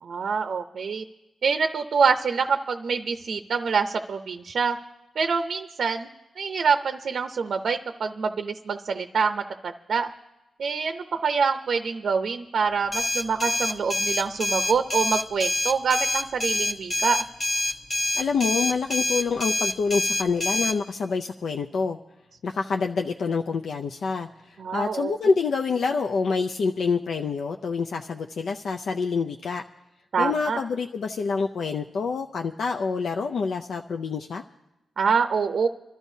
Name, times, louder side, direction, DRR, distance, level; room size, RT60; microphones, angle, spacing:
voice 1, 0.0-1.0 1.4-4.8 5.2-6.1 6.4-10.1 10.6-17.2 24.6-25.1 30.1-30.6 35.0-35.7, right 5 dB, 65° right, 7 dB, 0.6 m, -25 dB
sound 1, 12.9-20.8, left 2 dB, 25° left, 0.9 m, -26 dB
voice 2, 18.1-22.0 22.4-29.6 30.2-34.4, left 5 dB, 70° left, 3 dB, 0.4 m, -27 dB
26.5 x 13.0 x 2.7 m, 0.98 s
wide cardioid pair, 125°, 0 cm